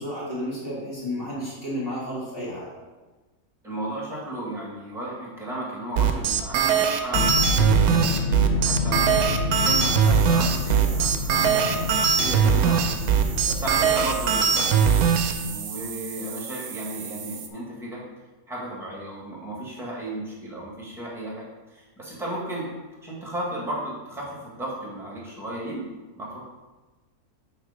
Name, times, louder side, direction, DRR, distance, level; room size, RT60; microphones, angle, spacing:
voice 1, 0.0-2.7, equal, 40° left, -7 dB, 2.5 m, -32 dB
voice 2, 3.6-7.2 7.5-9.0 9.6-13.0 13.5-18.0 18.5-22.7 23.0-25.8 26.1-26.4, right 1 dB, ahead, -4 dB, 1.6 m, -34 dB
sound 1, 6.0-15.3, right 7 dB, 80° right, 1.1 m, -21 dB
sound 2, 7.1-15.2, left 3 dB, 75° left, 0.5 m, -28 dB
sound 3, 10.0-17.5, right 8 dB, 60° right, 0.8 m, -38 dB
6.5 x 4.2 x 5.0 m, 1.2 s
omnidirectional pair, 1.6 m